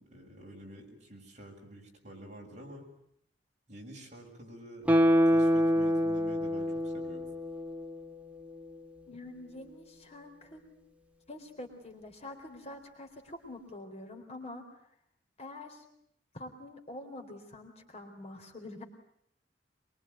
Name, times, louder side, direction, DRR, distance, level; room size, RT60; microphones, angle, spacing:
voice 1, 0.0-2.8 3.7-4.9 5.2-7.3, right 1 dB, 40° right, 0 dB, 6.9 m, -49 dB
Guitar, 4.9-8.1 8.5-8.6, equal, 10° right, 1.6 m, -26 dB
voice 2, 9.1-10.6 11.3-14.8 15.4-15.8 16.3-18.8, left 1 dB, 35° left, 4 dB, 3.9 m, -46 dB
24.0 x 23.5 x 9.3 m, 0.70 s
head